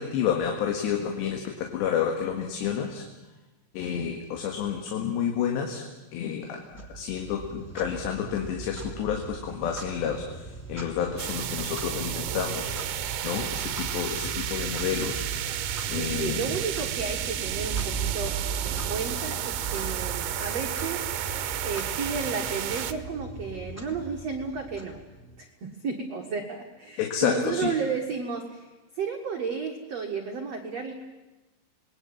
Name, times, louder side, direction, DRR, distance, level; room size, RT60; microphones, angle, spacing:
voice 1, 0.0-3.1 3.7-5.9 6.1-6.6 6.9-10.4 10.7-12.8 13.2-15.3 15.9-16.4 27.0-27.7, left 8 dB, 70° left, 3 dB, 3.9 m, -29 dB
Clock, 6.7-25.5, right 4 dB, 5° left, 1.7 m, -38 dB
sound 1, 11.2-22.9, right 11 dB, 70° right, 2.7 m, -32 dB
voice 2, 15.9-21.1 21.6-25.0 25.4-28.7 28.9-30.9, right 5 dB, 55° right, 3 dB, 1.9 m, -33 dB
27.5 x 20.5 x 9.0 m, 1.1 s
omnidirectional pair, 5.4 m